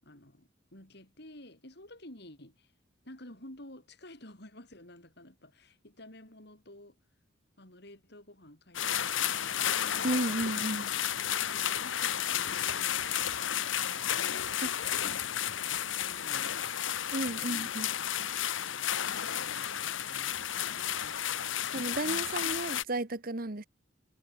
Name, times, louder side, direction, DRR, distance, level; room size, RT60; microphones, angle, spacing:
voice 1, 0.0-2.7 3.0-7.0 7.6-9.6 10.3-10.6 11.3-13.1 14.1-16.7 17.3-17.7 18.5-21.2 22.0-22.3, left 1 dB, 55° left, 7.7 m, -52 dB
sound 1, 8.7-22.8, left 10 dB, 80° left, 1.1 m, -32 dB
voice 2, 10.0-10.9 14.6-14.7 17.1-17.9 21.7-23.7, right 2 dB, 50° right, 1.4 m, -33 dB
head